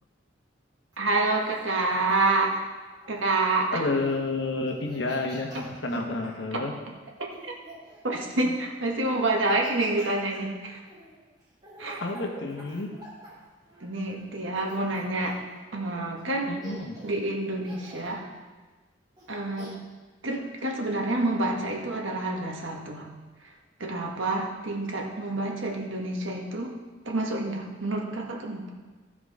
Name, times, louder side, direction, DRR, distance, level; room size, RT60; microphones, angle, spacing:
Laughter, 0.9-3.3 3.9-4.3 4.7-6.4 7.2-8.7 9.3-14.1 14.6-15.5 16.2-16.3 16.6-17.2 17.6-18.2 19.2-19.7, right 1 dB, 20° right, 3.0 m, -48 dB
voice 1, 1.0-2.6 3.1-3.8 5.5-5.6 6.5-6.6 7.4-7.5 8.0-10.8 11.8-12.0 13.8-15.4 15.7-16.6 17.0-18.2 19.3-19.8 20.2-23.1 23.4-23.5 23.8-26.7 27.0-28.7, right 2 dB, 80° right, 0 dB, 1.7 m, -28 dB
voice 2, 3.7-6.7 8.4-8.5 12.0-12.9 16.5-17.0, left 2 dB, 70° left, 2 dB, 1.3 m, -30 dB
15.0 x 5.0 x 4.9 m, 1.3 s
head